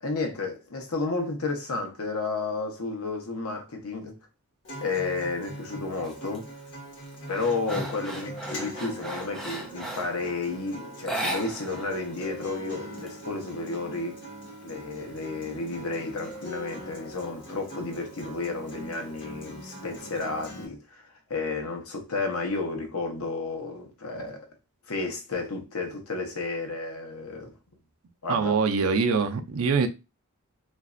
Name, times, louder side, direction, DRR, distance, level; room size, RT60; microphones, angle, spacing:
voice 1, 0.0-4.2 4.8-6.5 7.3-14.2 14.6-20.8 21.3-24.4 24.9-27.5 28.2-28.6, left 3 dB, 80° left, 0.9 m, -32 dB
Acoustic guitar, 4.6-20.7, right 1 dB, 55° left, 1.4 m, -42 dB
sound 1, 6.0-6.4 6.8-10.2 11.0-11.9 12.2-12.3 12.7-13.6, right 1 dB, ahead, 0.5 m, -36 dB
voice 2, 28.3-29.9, right 5 dB, 75° right, 0.5 m, -24 dB
3.1 x 2.6 x 2.5 m
head